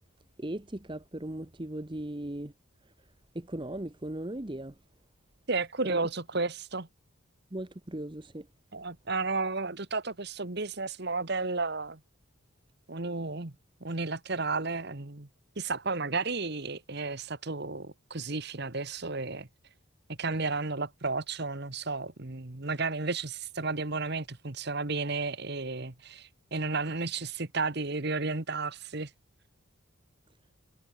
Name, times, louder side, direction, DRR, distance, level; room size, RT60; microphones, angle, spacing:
voice 1, 0.4-2.5 3.3-4.7 7.5-8.4, right 1 dB, 20° right, 0.9 m, -37 dB
voice 2, 5.5-6.9 8.7-12.0 12.9-13.5 13.8-15.3 15.6-19.5 20.2-29.1, right 3 dB, 50° right, 1.5 m, -33 dB
head